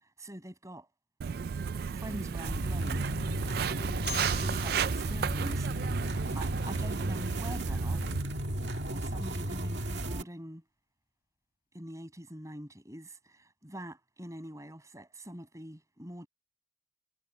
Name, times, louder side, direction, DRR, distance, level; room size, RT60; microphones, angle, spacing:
voice 1, 0.2-0.9 1.9-3.1 3.5-8.0 8.9-10.6 11.7-16.3, equal, 15° right, 7.3 m, -44 dB
Walk footsteps, 1.2-8.2, right 7 dB, 55° right, 0.3 m, -34 dB
sound 1, 2.4-10.2, right 1 dB, 70° right, 1.9 m, -34 dB
Marimba xylophone, 4.1-6.9, left 7 dB, 55° left, 6.3 m, -46 dB
head